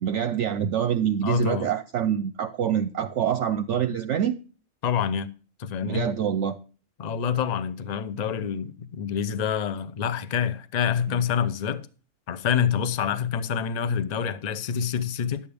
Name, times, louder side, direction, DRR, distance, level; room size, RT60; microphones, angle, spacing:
voice 1, 0.0-4.4 5.8-6.6 11.1-11.2, right 9 dB, 65° right, 0.9 m, -26 dB
voice 2, 1.2-1.7 4.8-5.3 5.6-6.1 7.0-11.9 12.3-15.5, left 7 dB, 40° left, 0.6 m, -27 dB
11.5 x 8.6 x 3.5 m
omnidirectional pair, 1.5 m